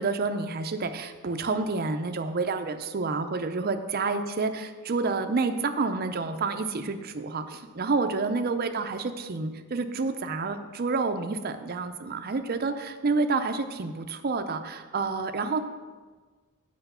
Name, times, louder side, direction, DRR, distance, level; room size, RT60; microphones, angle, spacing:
voice 1, 0.0-15.6, right 3 dB, 45° right, 8 dB, 0.5 m, -29 dB
8.0 x 5.1 x 6.7 m, 1.4 s
head